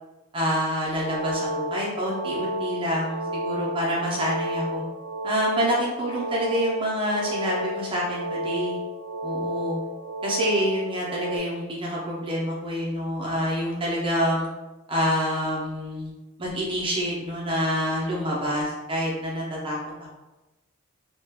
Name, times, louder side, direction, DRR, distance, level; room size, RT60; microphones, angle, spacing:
voice 1, 0.3-4.8 5.2-8.8 9.2-9.8 10.2-14.5 14.9-16.1 16.4-19.8, equal, 25° right, -5 dB, 0.5 m, -27 dB
sound 1, 0.9-11.4, equal, 75° right, 0.3 m, -31 dB
2.3 x 2.1 x 3.4 m, 1.1 s
head